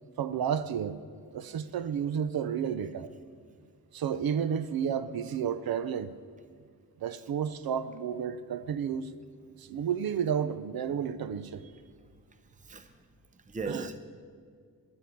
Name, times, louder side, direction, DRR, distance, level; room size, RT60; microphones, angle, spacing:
voice 1, 0.2-1.0 1.3-3.1 3.9-6.2 7.0-9.1 9.6-11.7 13.6-13.9, right 8 dB, 70° right, 0.6 m, -31 dB
voice 2, 13.5-14.0, right 4 dB, 20° right, 0.7 m, -38 dB
11.0 x 8.0 x 9.8 m
wide cardioid pair, 170°, 37 cm